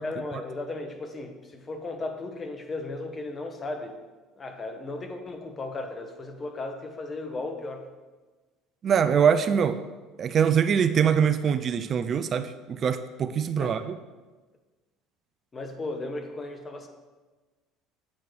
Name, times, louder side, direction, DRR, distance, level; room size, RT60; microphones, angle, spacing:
voice 1, 0.0-4.0 4.4-7.9 13.6-13.8 15.5-16.9, left 2 dB, 30° left, 5 dB, 0.9 m, -35 dB
voice 2, 8.8-9.8 10.2-13.9, right 7 dB, 45° right, 11 dB, 0.3 m, -23 dB
8.3 x 4.4 x 3.2 m, 1.3 s
hypercardioid pair, 65°, 0 cm